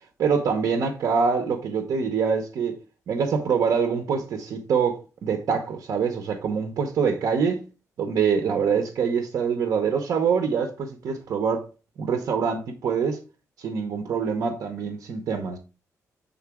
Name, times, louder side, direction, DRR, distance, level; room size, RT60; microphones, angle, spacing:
voice 1, 0.2-2.8 3.1-7.6 8.0-11.6 12.0-13.2 13.6-15.6, right 6 dB, 65° right, 0.8 m, -25 dB
7.1 x 3.8 x 3.6 m
wide cardioid pair, 155°, 6 cm